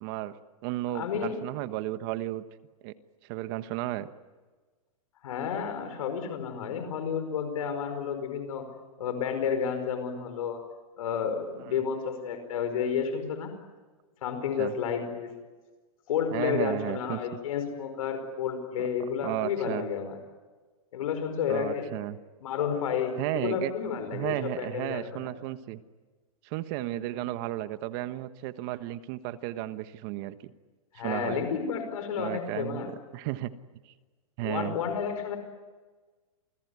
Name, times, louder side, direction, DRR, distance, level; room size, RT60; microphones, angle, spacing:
voice 1, 0.0-0.3 0.6-2.4 2.8-2.9 3.2-4.1 11.7-11.8 14.6-14.7 16.3-17.2 19.2-19.8 21.5-22.2 23.2-23.7 24.1-25.8 26.4-30.5 30.9-31.4 32.2-33.5 34.4-34.8, right 15 dB, 40° right, 12 dB, 1.3 m, -33 dB
voice 2, 0.9-1.3 5.2-8.7 9.0-10.6 11.0-13.5 14.2-15.3 16.1-20.2 20.9-21.9 22.4-25.3 30.9-32.9 34.4-35.4, left 7 dB, 70° left, 7 dB, 5.2 m, -31 dB
28.5 x 20.5 x 9.7 m, 1.3 s
hypercardioid pair, 150°, 18 cm